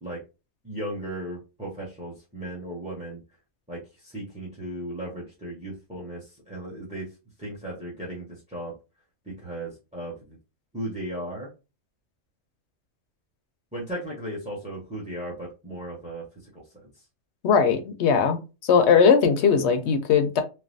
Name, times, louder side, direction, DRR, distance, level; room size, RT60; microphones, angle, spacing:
voice 1, 0.6-3.2 3.7-7.1 7.4-8.7 9.2-10.4 10.7-11.5 13.7-16.6 16.9-17.0, right 1 dB, 5° right, 0.7 m, -36 dB
voice 2, 17.4-20.4, left 6 dB, 65° left, 0.8 m, -19 dB
3.2 x 2.1 x 2.5 m
omnidirectional pair, 1.3 m